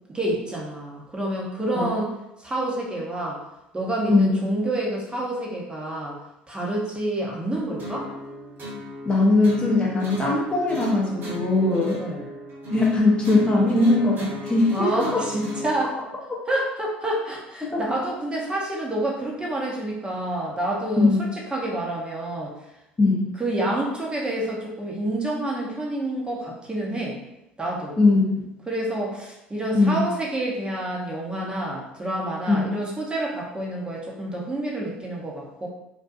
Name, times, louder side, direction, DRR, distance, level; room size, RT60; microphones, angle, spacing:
voice 1, 0.1-2.1 2.4-3.4 3.7-6.2 6.5-8.1 12.0-12.3 14.7-16.0 16.5-21.1 21.5-22.5 23.4-27.2 27.6-28.0 28.7-35.7, right 1 dB, 15° right, -3 dB, 0.7 m, -28 dB
sound 1, 7.8-15.8, left 1 dB, 40° right, 1.0 m, -34 dB
voice 2, 9.1-12.0 12.7-15.2 17.6-17.8 21.0-21.2 23.0-23.2 28.0-28.2 29.7-30.0 32.5-32.7, left 3 dB, 20° left, -3 dB, 0.6 m, -20 dB
2.6 x 2.2 x 2.5 m, 0.88 s
hypercardioid pair, 65°, 6 cm